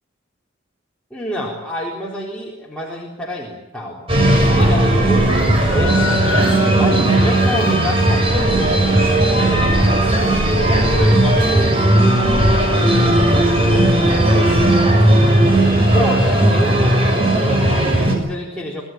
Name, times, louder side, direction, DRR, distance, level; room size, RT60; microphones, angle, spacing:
voice 1, 1.1-4.1 4.5-6.3 6.8-10.4 10.8-14.8 15.9-18.8, equal, 5° left, -5 dB, 4.0 m, -28 dB
sound 1, 4.1-18.1, right 1 dB, 30° right, 6.5 m, -15 dB
25.0 x 17.5 x 9.1 m, 0.99 s
head